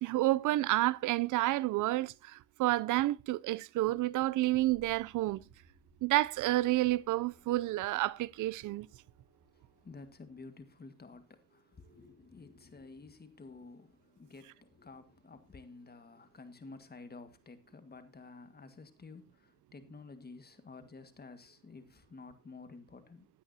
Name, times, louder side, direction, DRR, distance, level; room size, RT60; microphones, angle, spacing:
voice 1, 0.0-5.4 6.0-8.9, right 17 dB, 70° right, 0.5 m, -30 dB
sound 1, 4.4-10.4, right 4 dB, 85° right, 7.1 m, -64 dB
voice 2, 9.5-23.3, left 3 dB, 30° left, 1.8 m, -52 dB
15.5 x 9.6 x 2.8 m
cardioid pair, 85°, 32 cm